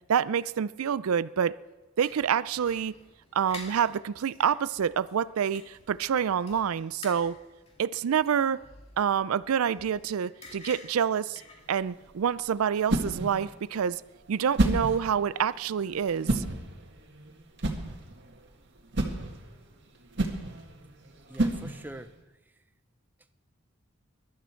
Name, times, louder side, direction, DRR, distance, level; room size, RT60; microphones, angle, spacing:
voice 1, 0.1-1.6 2.0-2.9 3.3-7.4 7.8-8.6 9.0-11.4 11.7-14.0 14.3-16.4, right 8 dB, 90° right, 18 dB, 0.4 m, -27 dB
sound 1, 2.0-12.1, left 2 dB, 30° left, 2.2 m, -50 dB
sound 2, 11.6-22.1, right 2 dB, 55° right, 1.8 m, -32 dB
voice 2, 20.8-22.1, right 1 dB, 10° right, 9 dB, 0.5 m, -44 dB
22.0 x 12.0 x 4.5 m, 1.1 s
head